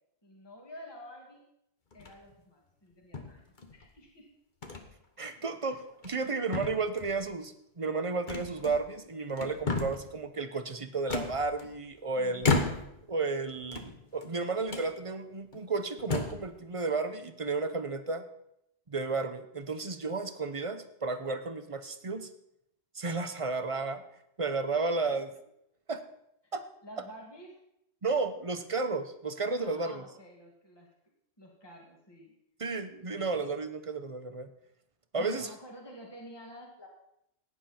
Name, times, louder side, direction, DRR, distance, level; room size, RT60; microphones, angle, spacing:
voice 1, 0.2-1.4 1.9-4.3 5.5-5.6 12.2-12.7 25.1-25.2 26.8-27.6 29.6-30.9 31.4-32.3 33.1-33.3 35.2-36.9, equal, 20° left, -1 dB, 2.3 m, -50 dB
sound 1, 1.9-2.3 3.1-3.9 4.6-4.9 5.3-5.4 5.9-6.3 6.5-7.2 8.3-9.0 9.3-10.1 11.1-11.9 12.4-13.1 13.6-14.3 14.7-14.9 15.5-15.6 16.0-16.5, left 3 dB, 40° left, 1.3 m, -33 dB
voice 2, 5.2-12.5 13.1-18.3 18.9-22.3 22.9-24.0 24.4-25.3 25.9-26.0 26.5-26.6 28.0-30.0 32.6-34.5 35.1-35.5, right 3 dB, 30° right, 9 dB, 0.8 m, -33 dB
16.5 x 9.9 x 4.4 m, 0.78 s
omnidirectional pair, 1.3 m